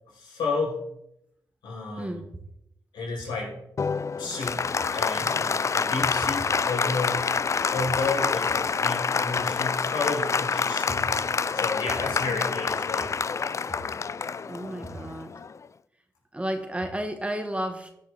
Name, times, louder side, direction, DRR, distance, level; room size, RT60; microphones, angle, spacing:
voice 1, 0.1-0.8 1.6-2.2 2.9-3.6 4.2-4.6 4.9-7.2 7.6-11.1 11.5-13.1, left 3 dB, 75° left, -3 dB, 4.9 m, -31 dB
Applause, 3.8-15.7, left 5 dB, 40° left, 0.4 m, -27 dB
voice 2, 14.4-15.3 16.3-17.9, right 1 dB, 15° right, 5 dB, 1.8 m, -32 dB
13.5 x 7.4 x 3.7 m, 0.78 s
supercardioid pair, 45°, 8 cm